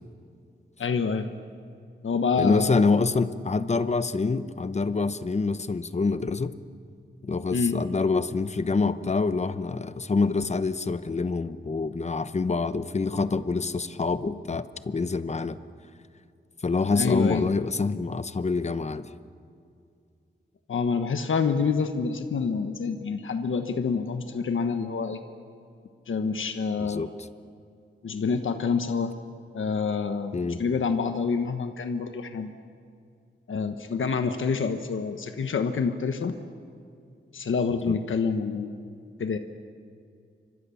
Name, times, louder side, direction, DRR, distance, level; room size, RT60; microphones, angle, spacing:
voice 1, 0.8-1.3 2.0-2.9 7.5-7.8 16.9-17.4 20.7-25.2 26.1-27.0 28.0-29.1 29.5-32.5 33.5-36.4 37.3-38.7 39.2-39.4, left 5 dB, 85° left, 7 dB, 1.2 m, -27 dB
voice 2, 2.4-6.5 7.2-15.6 16.6-19.0 26.8-27.1 30.3-30.6 37.9-38.0, left 4 dB, 35° left, 12 dB, 0.9 m, -26 dB
29.5 x 25.0 x 7.1 m, 2.4 s
wide cardioid pair, 155°, 20 cm